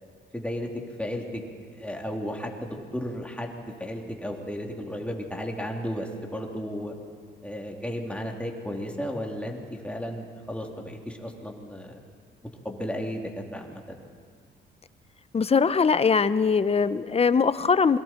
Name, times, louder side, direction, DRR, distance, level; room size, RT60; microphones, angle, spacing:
voice 1, 0.3-0.7 1.0-1.4 1.7-6.9 7.4-12.0 12.6-13.8, equal, 5° left, 0 dB, 3.3 m, -34 dB
voice 2, 15.3-18.0, left 5 dB, 30° left, 14 dB, 0.8 m, -21 dB
28.0 x 23.0 x 4.5 m, 2.2 s
cardioid pair, 90°, 20 cm